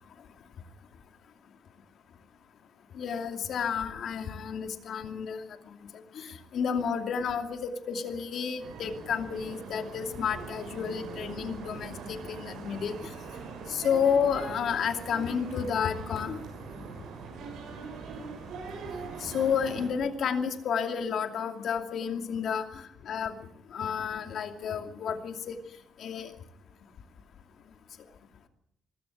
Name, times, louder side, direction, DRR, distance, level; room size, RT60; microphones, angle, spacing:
voice 1, 2.9-5.7 6.1-12.9 13.7-16.4 19.2-23.3 23.7-25.5 26.0-26.3, left 7 dB, 65° left, 6 dB, 2.6 m, -31 dB
sound 1, 8.6-19.9, right 4 dB, 85° right, 7.0 m, -42 dB
22.0 x 14.0 x 10.0 m, 0.80 s
cardioid pair, 90°, 0 cm